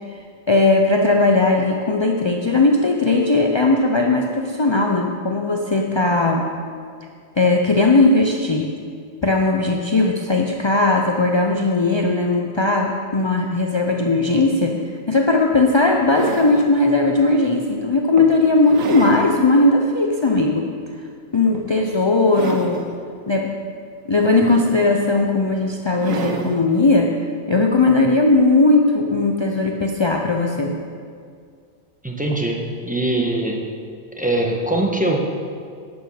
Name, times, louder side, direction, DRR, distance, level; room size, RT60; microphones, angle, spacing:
voice 1, 0.5-6.5 7.4-8.7 9.2-14.8 15.1-20.7 21.3-22.8 23.3-23.5 24.1-27.1 27.5-30.8, left 2 dB, 40° left, 1 dB, 0.4 m, -18 dB
sound 1, 14.9-15.0 15.7-16.7 17.4-17.5 18.2-19.3 19.8-19.9 21.5-21.9 22.2-23.0 24.1-25.0 26.0-26.6 28.0-28.1, right 4 dB, 80° right, 1.3 m, -30 dB
voice 2, 32.0-33.7 34.2-35.2, right 1 dB, 5° right, 0 dB, 1.1 m, -22 dB
11.0 x 7.1 x 6.5 m, 2.2 s
omnidirectional pair, 1.4 m